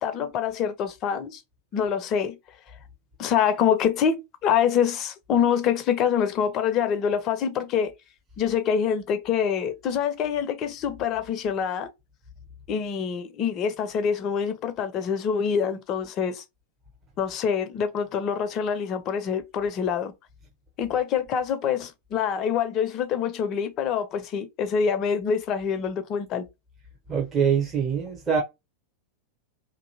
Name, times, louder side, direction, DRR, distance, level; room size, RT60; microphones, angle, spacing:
voice 1, 0.0-1.4 1.7-2.4 3.2-7.9 8.4-11.9 12.7-16.4 17.2-20.1 20.8-26.5, left 7 dB, 35° left, 0.5 m, -25 dB
voice 2, 27.1-28.4, right 7 dB, 20° right, 0.8 m, -24 dB
2.7 x 2.6 x 2.7 m
figure-of-eight pair, 90°, 0 cm